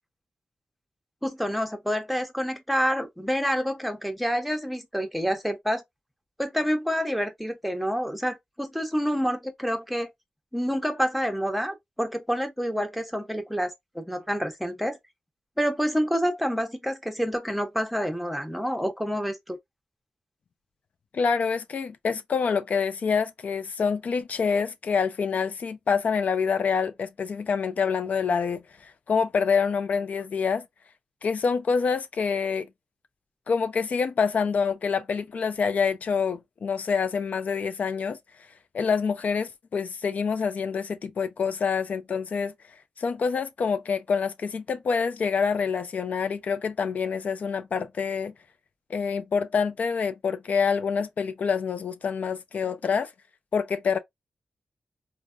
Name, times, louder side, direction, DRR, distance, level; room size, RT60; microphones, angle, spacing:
voice 1, 1.2-5.8 6.4-10.1 10.5-15.0 15.6-19.6, equal, ahead, 0.7 m, -28 dB
voice 2, 21.1-30.7 31.2-32.7 33.5-38.2 38.7-42.5 43.0-48.3 48.9-53.1 53.5-54.0, left 5 dB, 70° left, 0.3 m, -26 dB
3.4 x 2.1 x 2.4 m
cardioid pair, 75°, 3 cm